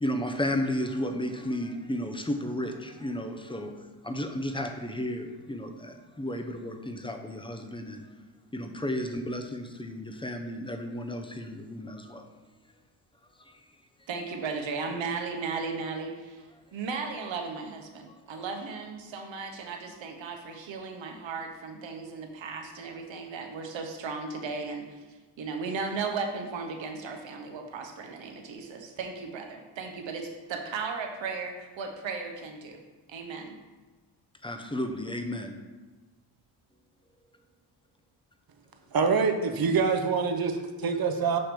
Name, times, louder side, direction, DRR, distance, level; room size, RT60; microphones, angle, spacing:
voice 1, 0.0-3.7 4.0-8.1 8.5-12.3 13.4-13.6 18.1-18.4 34.4-35.6, left 1 dB, 10° left, 5 dB, 0.7 m, -33 dB
voice 2, 14.1-16.4 16.7-24.9 25.4-32.8 33.1-33.6, right 4 dB, 70° right, 3 dB, 1.0 m, -36 dB
voice 3, 38.9-41.4, right 5 dB, 50° right, 6 dB, 0.8 m, -25 dB
6.5 x 2.9 x 5.1 m, 1.3 s
supercardioid pair, 55°, 47 cm